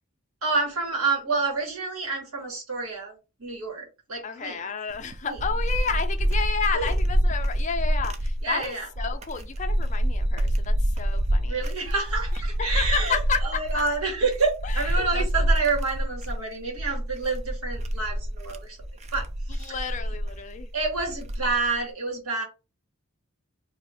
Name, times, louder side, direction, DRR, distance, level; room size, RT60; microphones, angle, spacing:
voice 1, 0.4-3.1 3.4-4.6 5.2-5.3 6.7-6.9 8.4-8.9 11.5-13.2 13.4-18.8 19.1-19.7 20.7-22.4, right 4 dB, 85° right, 1.6 m, -28 dB
voice 2, 4.2-11.7 12.6-13.9 14.6-15.3 19.5-20.7, left 6 dB, 35° left, 0.4 m, -31 dB
sound 1, 4.9-21.8, equal, 30° right, 0.3 m, -27 dB
2.7 x 2.5 x 4.1 m
head